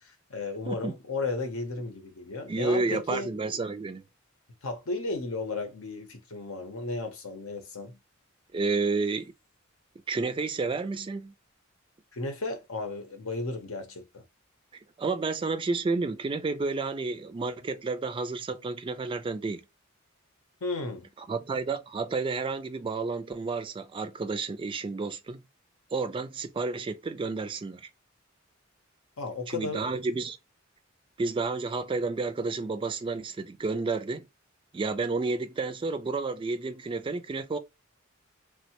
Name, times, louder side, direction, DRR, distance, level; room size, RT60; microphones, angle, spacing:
voice 1, 0.0-3.4 4.6-8.0 12.1-14.2 20.6-21.1 29.2-29.9, left 3 dB, 90° left, 0.8 m, -34 dB
voice 2, 2.5-4.0 8.5-9.3 10.1-11.3 15.0-19.6 21.2-25.4 25.9-27.9 29.5-30.4 31.2-34.3 34.7-37.6, right 3 dB, 25° right, 0.3 m, -31 dB
3.3 x 2.1 x 2.8 m
head